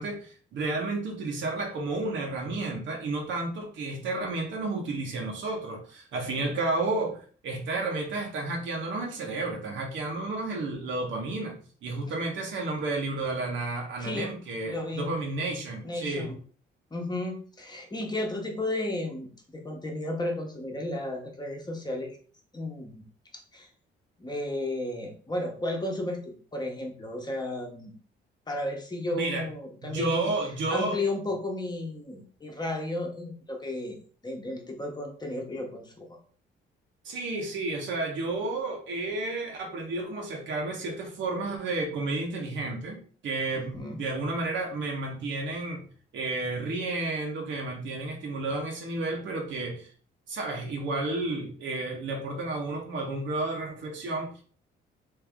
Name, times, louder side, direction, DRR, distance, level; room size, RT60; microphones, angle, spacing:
voice 1, 0.0-16.3 29.1-29.5 29.8-31.0 37.0-43.0 43.2-45.8 46.1-49.9 50.3-54.4, right 2 dB, 70° right, 1 dB, 1.1 m, -31 dB
voice 2, 14.0-14.3 14.6-15.1 15.8-16.4 16.9-22.2 22.5-23.0 23.5-23.7 24.2-27.9 28.5-30.3 30.7-34.0 34.2-36.1 43.5-44.0, left 1 dB, 20° left, 1 dB, 1.0 m, -33 dB
3.3 x 2.7 x 3.5 m, 0.43 s
cardioid pair, 90°, 20 cm